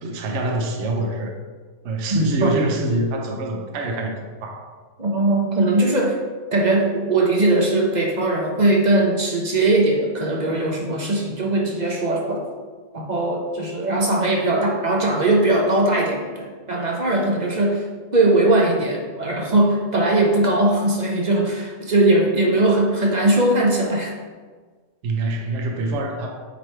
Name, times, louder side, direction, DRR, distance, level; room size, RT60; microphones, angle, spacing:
voice 1, 0.0-1.3 1.8-4.1 4.4-4.7 25.0-26.5, right 2 dB, 60° right, 2 dB, 1.0 m, -25 dB
voice 2, 5.0-6.2 6.5-12.5 12.9-17.8 18.1-24.1, right 2 dB, 35° right, -1 dB, 0.8 m, -20 dB
8.1 x 3.3 x 4.5 m, 1.4 s
omnidirectional pair, 1.5 m